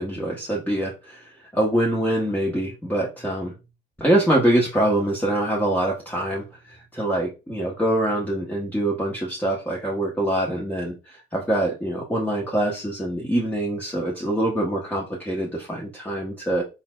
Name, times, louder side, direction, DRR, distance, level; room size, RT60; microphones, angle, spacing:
voice 1, 0.0-3.5 4.0-16.6, right 1 dB, 10° left, -3 dB, 1.1 m, -24 dB
4.2 x 4.1 x 2.4 m, 0.28 s
cardioid pair, 90°, 20 cm